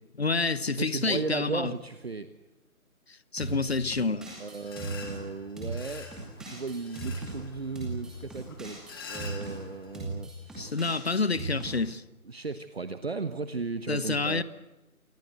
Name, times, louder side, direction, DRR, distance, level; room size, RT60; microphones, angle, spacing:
voice 1, 0.2-1.7 3.1-4.3 10.6-12.0 13.9-14.4, left 4 dB, 45° left, 1.2 m, -28 dB
voice 2, 0.8-2.3 4.4-6.1 6.4-10.9 12.3-14.4, right 4 dB, 45° right, 1.3 m, -36 dB
sound 1, 3.4-5.2 5.6-7.4 7.7-9.6 9.9-11.7, right 3 dB, ahead, 2.3 m, -38 dB
sound 2, 4.6-10.0, left 4 dB, 15° left, 2.4 m, -46 dB
27.5 x 20.5 x 8.0 m
figure-of-eight pair, 160°, 43 cm